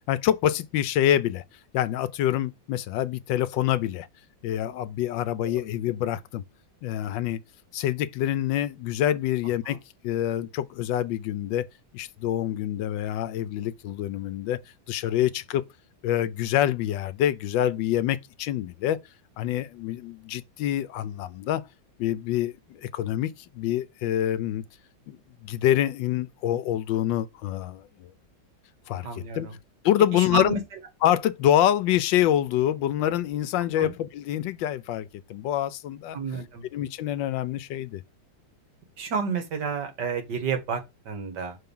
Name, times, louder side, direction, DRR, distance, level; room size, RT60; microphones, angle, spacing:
voice 1, 0.0-1.4 1.7-4.1 4.4-6.4 6.8-7.4 7.7-9.8 10.0-11.7 11.9-14.6 14.9-15.6 16.0-19.0 19.4-21.6 22.0-24.6 25.1-28.1 28.9-29.5 29.8-30.6 31.0-36.2 36.7-38.0, left 12 dB, 85° left, 1.3 m, -26 dB
voice 2, 29.0-29.6 30.1-30.6 33.8-33.9 36.1-36.7 39.0-41.6, right 6 dB, 65° right, 1.9 m, -30 dB
5.7 x 3.8 x 5.4 m
omnidirectional pair, 2.0 m